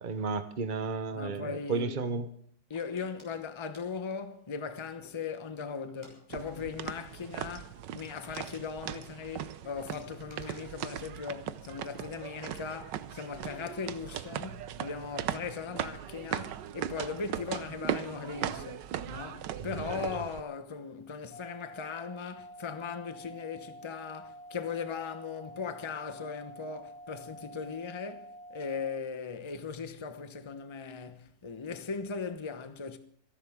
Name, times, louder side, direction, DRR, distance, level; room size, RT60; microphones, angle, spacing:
voice 1, 0.0-2.3 19.7-20.0, right 4 dB, 45° right, 0.6 m, -33 dB
voice 2, 1.1-2.0 2.7-33.0, left 5 dB, 20° left, 0.8 m, -39 dB
sound 1, 2.7-5.3 5.9-6.2 6.5-6.7 7.0-7.1 7.5-7.6 7.8-9.5 9.9-11.9 12.2-12.7, right 1 dB, 15° right, 5.7 m, -58 dB
sound 2, 6.3-20.4, right 10 dB, 75° right, 1.4 m, -39 dB
sound 3, 21.3-28.9, right 1 dB, 55° left, 2.4 m, -48 dB
27.5 x 11.5 x 3.7 m
omnidirectional pair, 2.0 m